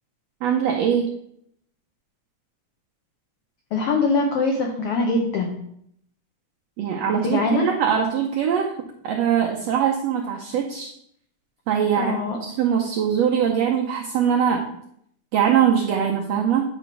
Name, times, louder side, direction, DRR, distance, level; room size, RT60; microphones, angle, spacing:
voice 1, 0.4-1.1 6.8-8.7 9.0-10.9 11.7-14.7 15.3-16.6, right 8 dB, 85° right, 0 dB, 1.4 m, -22 dB
voice 2, 3.7-5.6 7.2-7.7 12.0-12.4, left 3 dB, 90° left, 2 dB, 1.2 m, -22 dB
8.9 x 3.0 x 5.7 m, 0.71 s
omnidirectional pair, 3.7 m